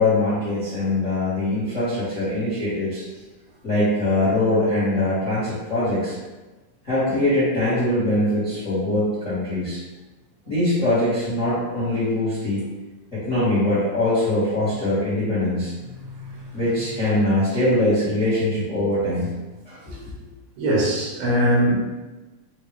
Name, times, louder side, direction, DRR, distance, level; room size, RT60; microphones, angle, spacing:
voice 1, 0.0-3.0 3.6-6.2 6.8-9.8 10.5-12.6 13.1-15.7 16.5-19.3 19.6-19.8, left 1 dB, 45° left, -11 dB, 0.9 m, -22 dB
voice 2, 16.0-16.6 19.9-20.0 20.6-21.7, equal, 85° right, -4 dB, 2.9 m, -22 dB
6.3 x 2.4 x 3.3 m, 1.2 s
omnidirectional pair, 3.9 m